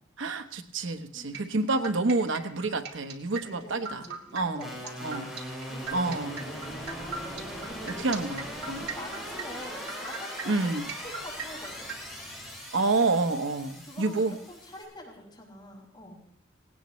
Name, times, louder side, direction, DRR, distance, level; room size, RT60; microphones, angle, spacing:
voice 1, 0.2-4.0 4.3-4.7 5.0-5.3 5.9-6.4 8.0-8.9 10.5-10.9 12.7-14.3, right 3 dB, 80° right, 8 dB, 1.0 m, -28 dB
sound 1, 1.3-12.0, right 5 dB, 60° right, 2.0 m, -39 dB
voice 2, 3.3-5.3 5.7-8.2 9.0-10.7 11.0-11.9 13.9-16.2, left 1 dB, 25° left, -4 dB, 5.8 m, -46 dB
sound 2, 4.6-14.8, equal, 5° right, 8.0 m, -40 dB
sound 3, 5.8-12.6, equal, 20° right, 3.2 m, -52 dB
18.0 x 17.5 x 3.1 m, 0.71 s
head